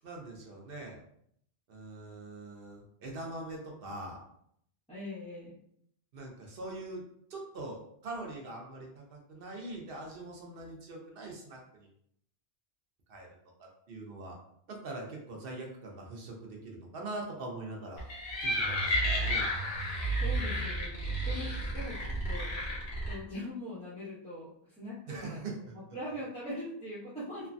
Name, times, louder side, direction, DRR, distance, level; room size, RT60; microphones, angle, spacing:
voice 1, 0.0-1.0 1.7-4.2 6.1-7.0 7.3-11.9 13.1-13.3 13.6-14.3 14.7-18.0 18.4-19.5 25.1-26.0, right 2 dB, 65° right, 0 dB, 0.8 m, -43 dB
voice 2, 4.9-5.5 20.2-22.5 23.1-25.4 25.9-27.5, equal, 5° left, -12 dB, 0.6 m, -41 dB
sound 1, 18.0-23.1, equal, 75° left, 1.1 m, -32 dB
3.1 x 2.2 x 2.5 m, 0.69 s
omnidirectional pair, 1.1 m